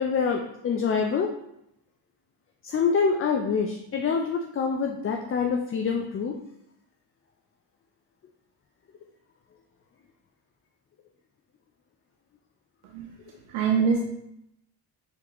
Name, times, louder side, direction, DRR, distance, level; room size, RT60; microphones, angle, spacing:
voice 1, 0.0-1.3 2.6-6.4, left 5 dB, 30° left, 2 dB, 0.4 m, -26 dB
voice 2, 12.8-14.0, right 6 dB, 85° right, 1 dB, 0.6 m, -26 dB
4.4 x 3.7 x 3.0 m, 0.81 s
supercardioid pair, 55°, 48 cm